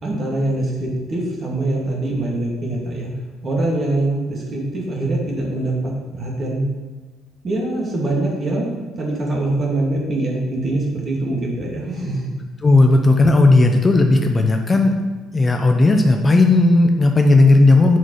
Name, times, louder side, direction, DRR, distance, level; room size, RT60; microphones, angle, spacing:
voice 1, 0.0-3.1 3.4-6.7 7.4-12.3, right 2 dB, 35° right, -2 dB, 2.6 m, -23 dB
voice 2, 12.6-15.0 15.3-18.0, left 2 dB, 25° left, 4 dB, 0.9 m, -14 dB
7.8 x 5.3 x 5.7 m, 1.3 s
figure-of-eight pair, 50°, 0 cm